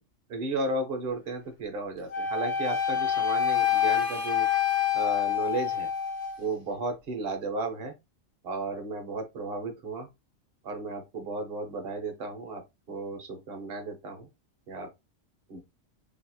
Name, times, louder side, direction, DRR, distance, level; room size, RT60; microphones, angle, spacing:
voice 1, 0.3-4.5 4.9-5.9 6.4-7.9 8.4-10.1 10.6-12.6 12.9-14.3 14.7-14.9 15.5-15.6, right 2 dB, 50° right, 0.9 m, -34 dB
Wind instrument woodwind instrument, 2.1-6.4, left 9 dB, 35° left, 0.6 m, -27 dB
2.9 x 2.7 x 2.2 m
omnidirectional pair, 1.4 m